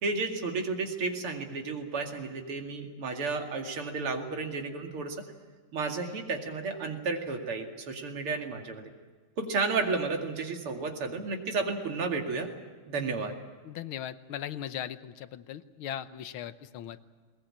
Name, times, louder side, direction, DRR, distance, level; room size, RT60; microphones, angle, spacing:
voice 1, 0.0-5.2 5.7-8.9 9.4-12.5 12.9-13.3, right 4 dB, 80° right, 4 dB, 3.2 m, -32 dB
voice 2, 13.6-17.0, left 10 dB, 75° left, 13 dB, 1.7 m, -38 dB
21.0 x 19.5 x 8.8 m, 1.5 s
omnidirectional pair, 2.4 m